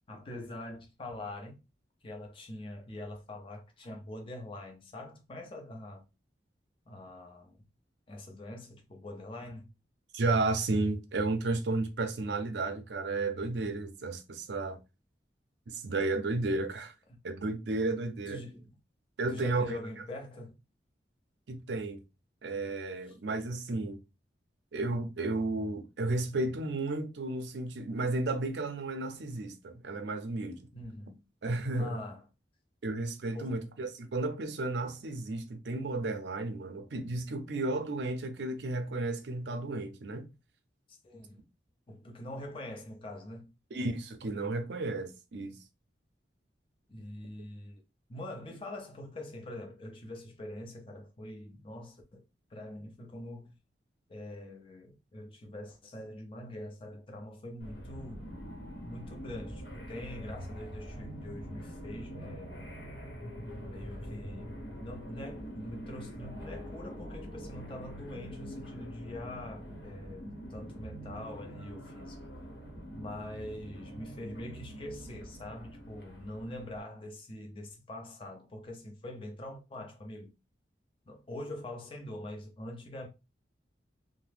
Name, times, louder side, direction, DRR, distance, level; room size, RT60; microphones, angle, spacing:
voice 1, 0.1-1.6 2.0-6.1 6.9-7.7 8.1-9.7 18.3-18.7 19.3-20.6 23.1-23.2 30.7-31.2 31.8-32.3 33.3-33.6 40.9-41.4 41.9-43.5 46.9-47.8 48.1-52.2 52.5-53.5 54.1-58.2 58.8-62.8 63.6-72.2 72.9-80.3 81.1-83.1, left 1 dB, 30° left, 0.5 m, -44 dB
voice 2, 10.1-14.8 15.7-16.9 17.2-18.4 19.2-19.8 21.5-22.0 22.4-24.0 24.7-30.7 31.4-32.0 32.8-40.3 43.7-45.6, right 2 dB, 75° right, 0.5 m, -33 dB
sound 1, 57.6-76.8, equal, 65° left, 0.9 m, -44 dB
2.7 x 2.1 x 3.3 m
head